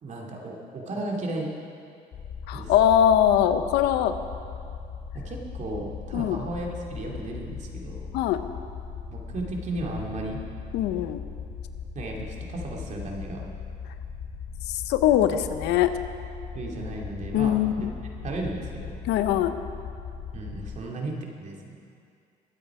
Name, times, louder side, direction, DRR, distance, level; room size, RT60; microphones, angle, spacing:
voice 1, 0.0-1.5 2.5-2.7 5.1-8.1 9.1-10.4 11.9-13.4 16.5-17.9 18.2-19.0 20.3-21.8, right 2 dB, 45° right, -1 dB, 2.5 m, -34 dB
sound 1, 2.1-20.8, left 6 dB, 45° left, 0.8 m, -38 dB
voice 2, 2.5-4.1 6.1-6.4 8.1-8.4 10.7-11.2 14.7-15.9 17.3-17.9 19.1-19.5, left 10 dB, 90° left, 10 dB, 0.7 m, -22 dB
22.5 x 8.1 x 4.9 m, 2.4 s
cardioid pair, 110°, 17 cm